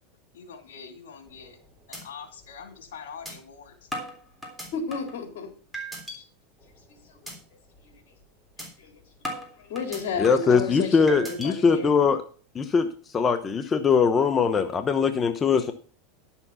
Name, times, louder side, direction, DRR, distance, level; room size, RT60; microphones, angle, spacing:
voice 1, 0.3-1.6 1.9-3.9, left 6 dB, 85° left, 5 dB, 2.5 m, -44 dB
sound 1, 1.3-1.6 1.9-2.0 2.4-2.5 3.3-3.4 3.9-5.2 5.7-6.2 6.6-6.8 7.3-7.4 7.8-8.0 8.6-8.7 9.2-10.5 11.1-11.5, right 1 dB, 5° left, 3.5 m, -37 dB
voice 2, 4.7-5.5 8.8-8.9 9.6-11.9, left 4 dB, 70° left, 4 dB, 3.8 m, -31 dB
voice 3, 10.2-12.2 12.5-12.9 13.1-15.7, left 5 dB, 20° left, 8 dB, 1.0 m, -21 dB
11.5 x 7.1 x 5.7 m, 0.41 s
supercardioid pair, 125°, 0 cm